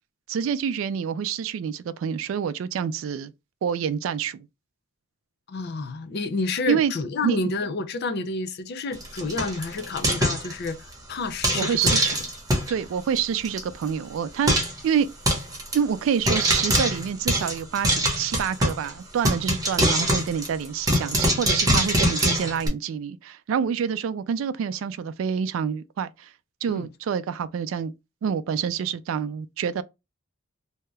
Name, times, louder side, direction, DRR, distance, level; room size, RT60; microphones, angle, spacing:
voice 1, 0.3-3.3 3.6-4.4 6.7-6.9 7.2-7.4 11.5-12.2 12.7-15.1 15.7-26.3 26.6-27.9 28.2-29.8, right 7 dB, 85° right, 0.3 m, -27 dB
voice 2, 5.5-10.8 11.1-11.9 26.7-26.9, left 3 dB, 55° left, 0.4 m, -29 dB
Frying (food), 8.9-10.9 11.4-12.7 13.2-13.3 13.4-13.6 13.9-14.0 14.5-14.8 15.3-15.8 16.3-18.9 19.2-22.7, right 1 dB, 20° right, 0.9 m, -23 dB
2.7 x 2.3 x 3.1 m
head